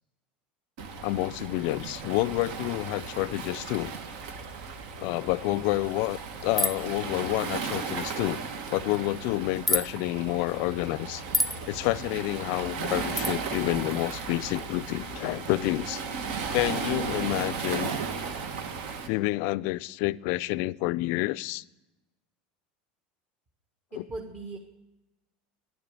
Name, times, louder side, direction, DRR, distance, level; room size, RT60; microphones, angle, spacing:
Waves surf, 0.8-19.1, right 5 dB, 70° right, 1.3 m, -35 dB
voice 1, 1.0-3.9 5.0-8.4 8.7-11.2 11.7-16.0 16.5-17.9 19.1-21.6 24.0-24.1, left 19 dB, 65° left, 0.3 m, -29 dB
sound 1, 6.6-6.9 9.7-9.9 11.3-11.6 13.2-13.3, left 1 dB, ahead, 0.7 m, -26 dB
voice 2, 23.9-24.6, right 2 dB, 35° right, 1.5 m, -38 dB
11.0 x 6.9 x 8.0 m
supercardioid pair, 105°, 5 cm